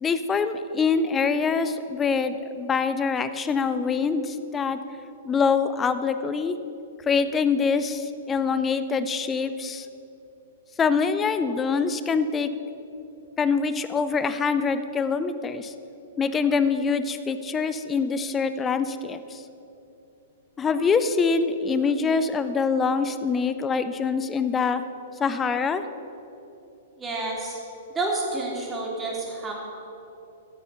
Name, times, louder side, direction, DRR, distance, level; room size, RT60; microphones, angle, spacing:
voice 1, 0.0-4.8 5.2-6.6 7.1-9.9 10.8-12.5 13.4-15.7 16.2-19.4 20.6-24.8 25.2-25.8, left 5 dB, 15° left, 12 dB, 0.6 m, -24 dB
voice 2, 27.0-27.6 27.9-29.5, right 2 dB, 15° right, -2 dB, 3.0 m, -29 dB
13.5 x 8.1 x 6.8 m, 2.9 s
figure-of-eight pair, 110°, 0 cm